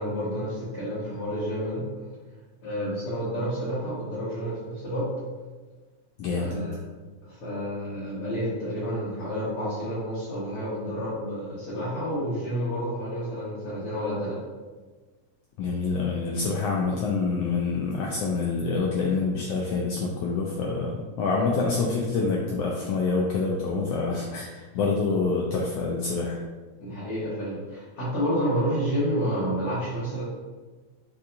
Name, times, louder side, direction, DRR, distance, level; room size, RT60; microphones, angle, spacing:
voice 1, 0.0-1.9 2.6-5.1 6.4-6.8 7.2-14.4 25.1-25.2 26.8-30.2, equal, 55° left, -10 dB, 1.8 m, -30 dB
voice 2, 6.2-6.5 15.6-26.4, left 4 dB, 85° left, -2 dB, 1.4 m, -26 dB
7.0 x 2.8 x 2.5 m, 1.3 s
omnidirectional pair, 3.3 m